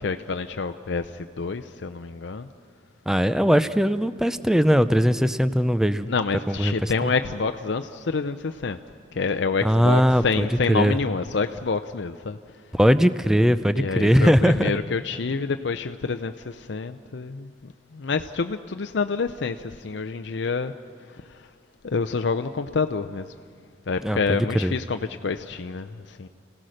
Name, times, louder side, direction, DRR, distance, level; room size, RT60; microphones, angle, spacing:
voice 1, 0.0-2.5 6.1-8.8 9.1-12.4 13.8-20.7 21.3-21.4 21.8-23.3 23.9-26.3, left 4 dB, 65° left, 8 dB, 0.6 m, -27 dB
voice 2, 3.1-6.1 6.5-7.1 9.6-11.0 12.7-14.7 24.0-24.7, equal, 5° right, 12 dB, 0.5 m, -20 dB
30.0 x 17.0 x 6.5 m, 2.1 s
head